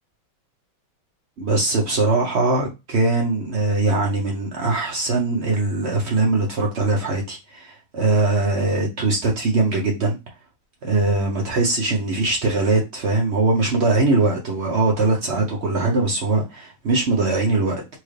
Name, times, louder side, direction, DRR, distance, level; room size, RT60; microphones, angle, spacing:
voice 1, 1.4-10.2 10.8-17.8, right 2 dB, 85° right, 0.5 m, -21 dB
4.4 x 2.4 x 3.1 m
omnidirectional pair, 2.2 m